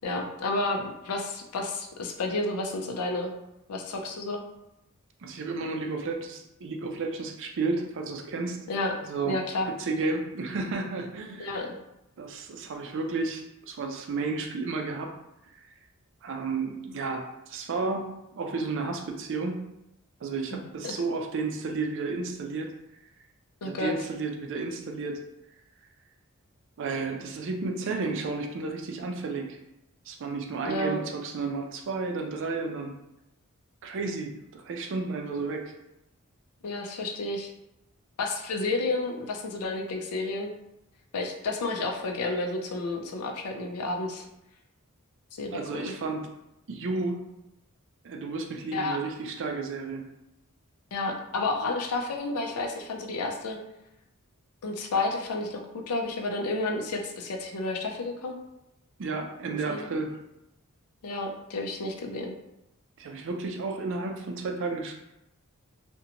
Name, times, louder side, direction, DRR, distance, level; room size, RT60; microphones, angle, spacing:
voice 1, 0.0-3.3 3.7-4.4 8.7-9.0 9.2-9.7 11.4-11.7 20.5-20.6 20.8-20.9 23.6-23.9 30.7-31.0 36.6-37.5 38.2-40.5 41.1-44.2 45.3-45.9 48.7-49.0 50.9-53.6 54.6-58.4 59.5-59.9 61.0-62.3, left 2 dB, 85° left, 2 dB, 0.5 m, -31 dB
voice 2, 5.2-8.6 9.0-9.4 9.8-11.5 12.2-15.1 16.2-19.6 20.2-22.7 23.6-25.2 26.8-29.6 30.1-32.9 33.8-35.7 45.5-46.3 46.7-47.2 48.0-50.1 59.0-60.2 63.0-64.9, right 3 dB, 60° right, 3 dB, 0.4 m, -32 dB
2.8 x 2.2 x 2.5 m, 0.86 s
head